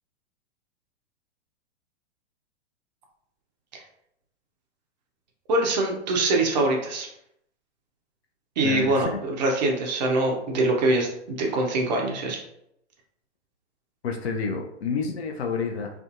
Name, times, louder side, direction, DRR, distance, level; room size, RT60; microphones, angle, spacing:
voice 1, 5.5-7.1 8.6-12.4, right 2 dB, 40° right, 1 dB, 0.5 m, -24 dB
voice 2, 8.6-9.2 14.0-15.9, left 4 dB, 60° left, 3 dB, 0.5 m, -29 dB
2.4 x 2.4 x 2.4 m, 0.76 s
figure-of-eight pair, 100°, 35 cm